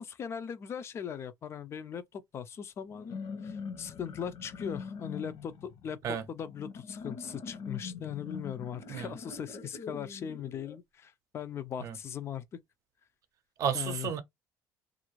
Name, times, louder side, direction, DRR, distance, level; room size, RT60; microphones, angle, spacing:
voice 1, 0.0-12.4 13.7-14.1, left 8 dB, 35° left, 0.4 m, -39 dB
sound 1, 2.9-10.8, left 5 dB, 65° left, 1.0 m, -43 dB
voice 2, 13.6-14.2, right 8 dB, 50° right, 0.6 m, -32 dB
2.6 x 2.5 x 3.0 m
cardioid pair, 140°, 7 cm